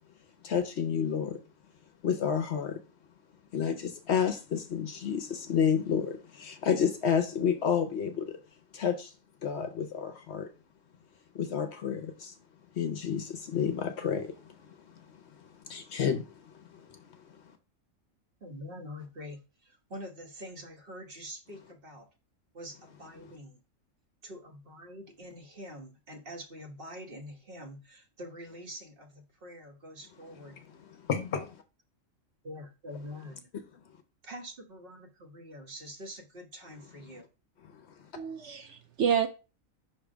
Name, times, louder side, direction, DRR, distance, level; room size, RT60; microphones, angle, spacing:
voice 1, 0.4-1.4 2.0-2.8 3.5-8.4 8.7-9.1 9.4-10.5 11.3-12.3 12.8-14.7 15.6-16.5 16.9-17.0 31.1-31.6, left 7 dB, 60° left, 0.9 m, -30 dB
voice 2, 18.4-22.1 22.5-23.6 24.2-30.6 32.4-33.5 34.2-37.3, equal, 45° right, 1.4 m, -45 dB
voice 3, 38.2-39.3, right 8 dB, 65° right, 0.8 m, -29 dB
5.7 x 3.5 x 4.9 m
omnidirectional pair, 1.4 m